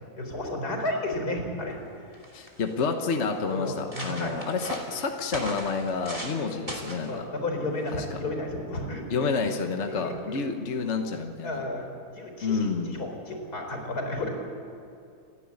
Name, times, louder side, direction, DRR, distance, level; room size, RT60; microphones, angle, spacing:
voice 1, 0.2-1.8 3.5-4.3 7.0-9.0 9.9-10.4 11.4-14.3, left 2 dB, 85° left, 3 dB, 4.5 m, -32 dB
sound 1, 1.8-1.9 2.1-2.7 3.3-3.4 3.7-6.4 6.7-7.1 7.9-8.1, right 1 dB, 20° right, 2.9 m, -38 dB
voice 2, 2.3-7.3 7.9-8.2 9.1-11.6 12.4-13.0, left 4 dB, 50° left, 5 dB, 1.4 m, -29 dB
29.0 x 11.0 x 9.6 m, 2.5 s
omnidirectional pair, 1.6 m